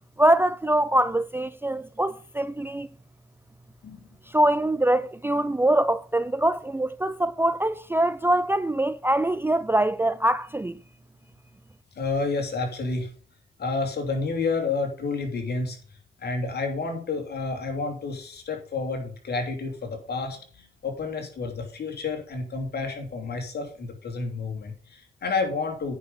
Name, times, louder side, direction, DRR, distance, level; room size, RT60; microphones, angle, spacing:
voice 1, 0.2-2.9 4.3-10.8, right 1 dB, 10° right, 0.4 m, -23 dB
voice 2, 11.9-13.1 13.6-15.8 16.2-25.9, left 3 dB, 55° left, 2.9 m, -30 dB
9.5 x 5.6 x 5.3 m
hypercardioid pair, 50°, 20 cm